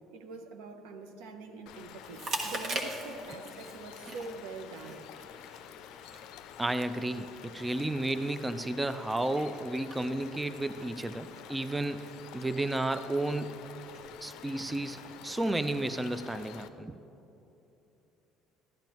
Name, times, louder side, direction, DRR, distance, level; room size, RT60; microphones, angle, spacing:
voice 1, 0.1-5.1, right 4 dB, 85° right, 6 dB, 0.8 m, -44 dB
sound 1, 1.7-16.7, left 10 dB, 75° left, 0.4 m, -49 dB
Chewing mastication, 2.0-16.6, right 1 dB, 50° right, 1.3 m, -45 dB
voice 2, 6.6-12.1 12.3-13.5 14.2-17.0, right 2 dB, 15° right, 11 dB, 0.4 m, -32 dB
13.0 x 10.5 x 3.0 m, 3.0 s
supercardioid pair, 80°, 0 cm